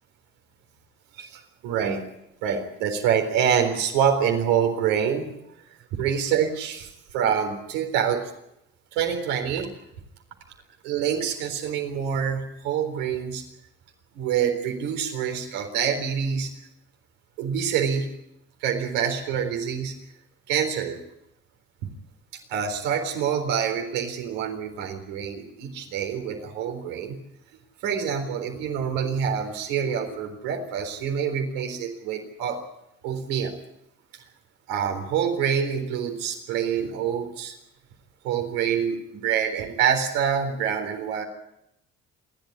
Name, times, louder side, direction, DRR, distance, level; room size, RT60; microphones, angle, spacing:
voice 1, 1.2-2.1 2.4-5.3 5.9-8.3 8.9-9.7 10.8-13.4 14.1-16.5 17.4-18.1 18.6-19.9 20.5-21.0 22.5-27.2 27.8-32.6 33.0-33.6 34.7-37.6 38.2-41.2, right 8 dB, 85° right, 4 dB, 4.0 m, -26 dB
28.5 x 12.0 x 9.9 m, 0.81 s
hypercardioid pair, 55°, 30 cm